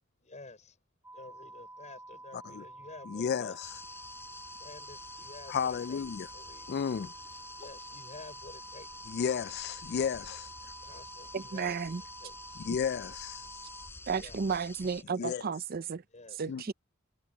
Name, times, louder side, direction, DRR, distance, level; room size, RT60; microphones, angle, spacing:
voice 1, 0.2-0.8 1.1-3.6 4.6-6.7 7.6-9.2 10.8-11.8 12.2-12.6 14.1-14.4 14.8-15.4 16.1-16.4, left 2 dB, 35° left, 5.9 m, -50 dB
sound 1, 1.0-13.9, right 2 dB, 10° right, 3.3 m, -49 dB
voice 2, 2.3-2.6 3.1-3.7 5.5-6.3 6.7-7.1 9.1-10.5 12.6-13.5 15.2-15.4 16.5-16.6, left 7 dB, 50° left, 0.3 m, -33 dB
sound 2, 3.6-15.0, left 2 dB, 10° left, 5.3 m, -49 dB
voice 3, 11.3-12.0 14.1-16.0 16.3-16.7, right 5 dB, 50° right, 0.5 m, -33 dB
head